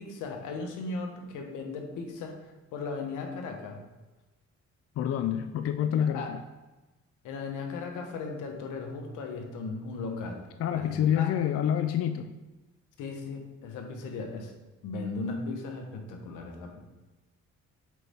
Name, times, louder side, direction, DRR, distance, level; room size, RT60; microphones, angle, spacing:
voice 1, 0.0-3.8 6.1-6.3 7.2-10.4 10.7-11.3 13.0-14.5 14.8-16.8, left 3 dB, 90° left, 3 dB, 1.2 m, -37 dB
voice 2, 5.0-6.4 10.6-12.3, left 9 dB, 50° left, 8 dB, 0.5 m, -27 dB
8.1 x 4.2 x 3.5 m, 1.1 s
cardioid pair, 90°, 30 cm